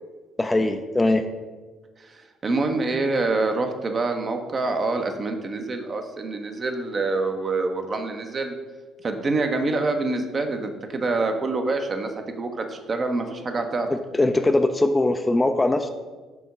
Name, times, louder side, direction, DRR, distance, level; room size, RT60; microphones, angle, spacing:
voice 1, 0.4-1.2 14.1-15.9, left 2 dB, 15° left, 7 dB, 0.4 m, -21 dB
voice 2, 2.0-8.6 9.0-13.9, right 3 dB, 35° right, 5 dB, 0.8 m, -26 dB
7.0 x 3.6 x 5.3 m, 1.3 s
figure-of-eight pair, 50°, 0 cm